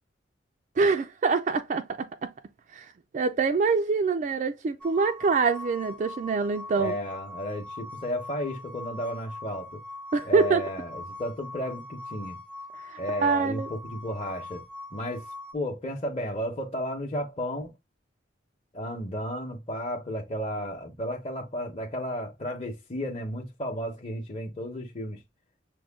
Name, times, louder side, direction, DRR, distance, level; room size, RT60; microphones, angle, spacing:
voice 1, 0.8-2.3 2.7-6.9 10.1-10.6 12.7-13.7, right 4 dB, 40° right, 0.3 m, -25 dB
sound 1, 4.8-15.5, left 2 dB, 5° left, 0.6 m, -42 dB
voice 2, 6.8-9.8 10.2-12.4 13.0-14.6 14.9-15.3 15.5-17.7 18.7-25.2, equal, 35° left, 0.8 m, -33 dB
6.2 x 2.2 x 3.4 m
head